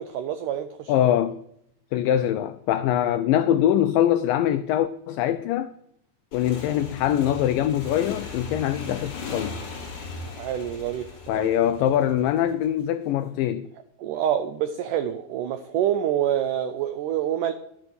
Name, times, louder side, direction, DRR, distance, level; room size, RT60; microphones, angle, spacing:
voice 1, 0.0-0.9 10.2-11.5 14.0-17.5, right 10 dB, 85° right, 1.8 m, -27 dB
voice 2, 0.9-1.4 1.9-5.7 6.3-9.6 11.3-13.7, left 11 dB, 90° left, 1.9 m, -23 dB
Motorcycle / Engine, 6.3-12.7, left 4 dB, 50° left, 3.9 m, -38 dB
11.0 x 9.0 x 6.7 m
omnidirectional pair, 4.5 m